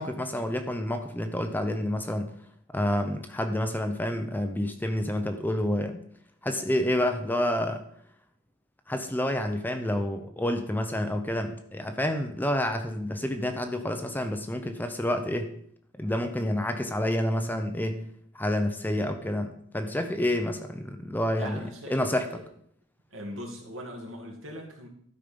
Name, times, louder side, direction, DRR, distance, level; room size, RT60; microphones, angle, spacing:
voice 1, 0.0-2.3 2.7-6.0 6.4-7.8 8.9-15.5 16.0-18.0 18.3-21.6 21.9-22.3, left 1 dB, 10° left, 6 dB, 0.7 m, -28 dB
voice 2, 21.4-22.4 23.1-24.9, equal, 70° right, 1 dB, 2.3 m, -40 dB
12.5 x 5.4 x 5.2 m, 0.66 s
head